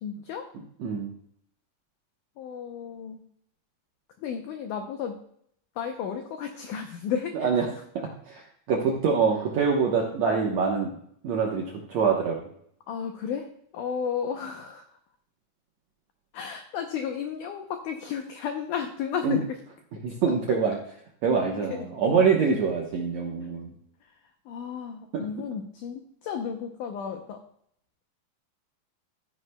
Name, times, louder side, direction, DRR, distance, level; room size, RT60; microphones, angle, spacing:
voice 1, 0.0-0.5 2.4-3.2 4.2-5.2 5.8-7.6 12.9-13.5 13.7-14.8 16.3-19.5 21.7-21.9 24.5-27.4, left 7 dB, 80° left, 5 dB, 1.8 m, -33 dB
voice 2, 0.5-1.1 7.3-7.7 7.9-12.4 19.2-19.4 20.0-20.9 21.2-23.7 25.1-25.3, right 5 dB, 70° right, -1 dB, 1.7 m, -25 dB
13.0 x 9.7 x 2.2 m, 0.68 s
omnidirectional pair, 4.4 m